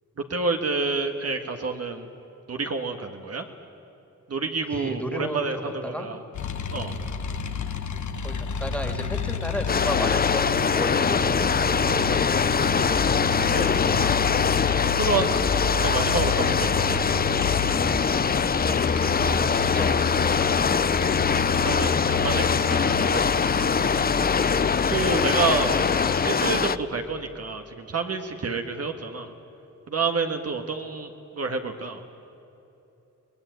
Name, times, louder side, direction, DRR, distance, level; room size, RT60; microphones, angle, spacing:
voice 1, 0.3-2.1 2.5-3.4 4.3-6.2 6.7-6.9 13.5-14.1 14.8-15.3 15.8-17.0 21.6-23.7 24.9-26.0 26.2-29.3 29.9-32.0, right 4 dB, 55° right, 4 dB, 1.7 m, -29 dB
voice 2, 4.7-6.1 8.2-12.5 18.8-20.4, equal, 5° left, 5 dB, 2.5 m, -34 dB
sound 1, 6.3-26.3, left 6 dB, 70° left, 1.5 m, -29 dB
sound 2, 9.7-26.8, left 6 dB, 30° left, 0.6 m, -23 dB
23.0 x 19.0 x 9.3 m, 2.9 s
cardioid pair, 80°, 30 cm